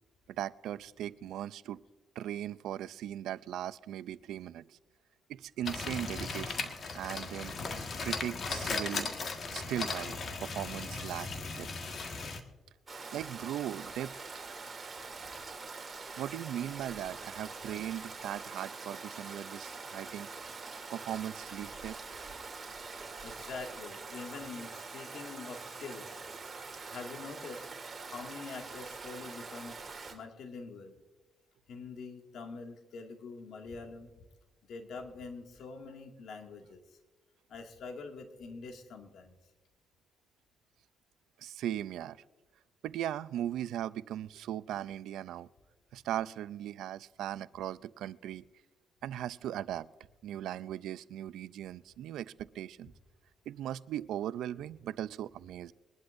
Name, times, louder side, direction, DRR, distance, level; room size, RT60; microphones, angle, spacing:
voice 1, 0.3-1.8 2.2-4.8 5.3-7.7 8.0-9.2 9.5-11.3 11.6-11.7 13.1-14.1 16.2-20.3 20.9-22.0 41.4-42.2 42.8-45.5 45.9-48.4 49.0-49.9 50.2-52.9 53.5-55.7, right 11 dB, 80° right, 17 dB, 0.4 m, -38 dB
sound 1, 5.7-12.4, left 4 dB, 50° left, 1.6 m, -37 dB
Stream, 12.9-30.1, right 4 dB, 30° right, 2.8 m, -44 dB
voice 2, 23.2-26.2 26.9-27.7 28.1-29.8 30.1-30.9 31.7-34.1 34.7-37.0 37.5-39.4, left 4 dB, 70° left, 3 dB, 2.1 m, -45 dB
22.5 x 11.5 x 2.6 m, 1.1 s
cardioid pair, 90°, 0 cm